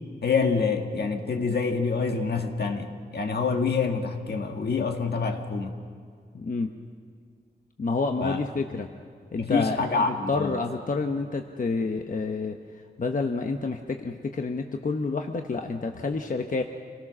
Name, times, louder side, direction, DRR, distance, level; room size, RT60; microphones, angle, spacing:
voice 1, 0.2-5.8 8.2-8.4 8.7-8.8 9.4-10.6, left 4 dB, 75° left, 4 dB, 1.7 m, -26 dB
voice 2, 6.3-6.7 7.8-8.9 9.3-16.6, left 4 dB, 50° left, 4 dB, 1.0 m, -29 dB
26.5 x 18.0 x 6.2 m, 2.2 s
wide cardioid pair, 95°, 17 cm